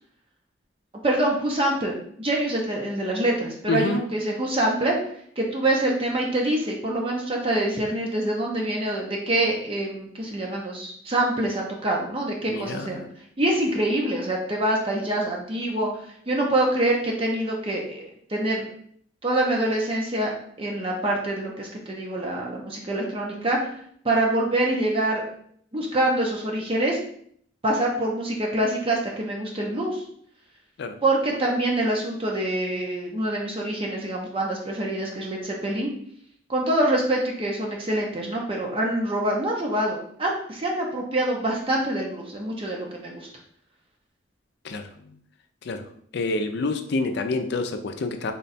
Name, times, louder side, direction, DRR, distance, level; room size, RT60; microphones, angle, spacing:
voice 1, 1.0-5.0 5.4-13.0 13.4-18.6 19.2-20.3 20.6-23.7 24.0-25.2 25.7-27.0 27.6-30.0 31.0-35.9 36.5-43.3, right 1 dB, 30° right, -1 dB, 0.6 m, -25 dB
voice 2, 3.7-4.0 12.5-13.0 30.8-30.9 44.6-44.8 45.7-45.8 46.1-48.3, left 3 dB, 60° left, 7 dB, 0.4 m, -27 dB
3.7 x 2.2 x 4.0 m, 0.64 s
head